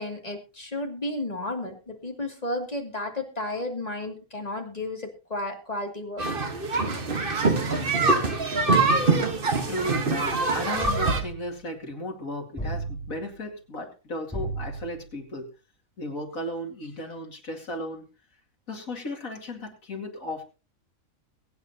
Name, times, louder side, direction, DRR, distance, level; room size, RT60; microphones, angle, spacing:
voice 1, 0.0-6.2, left 1 dB, 30° left, 2 dB, 2.5 m, -33 dB
sound 1, 6.2-11.2, right 3 dB, 40° right, 1.5 m, -24 dB
voice 2, 9.7-15.5 16.0-18.1 18.7-20.4, left 1 dB, 85° left, 1 dB, 2.9 m, -35 dB
sound 2, 10.8-11.6 12.6-13.3 14.3-15.1, right 2 dB, 5° left, 5.8 m, -33 dB
22.5 x 8.9 x 2.8 m, 0.31 s
omnidirectional pair, 1.4 m